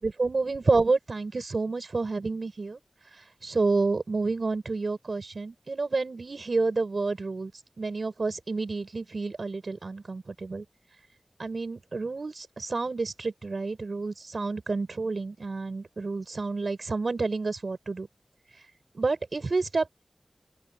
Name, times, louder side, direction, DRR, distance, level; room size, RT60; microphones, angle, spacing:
voice 1, 0.0-2.8 3.1-7.5 7.8-10.6 11.4-18.1 18.9-19.9, right 3 dB, 70° right, 6.8 m, -29 dB
open air
wide cardioid pair, 50°, 0 cm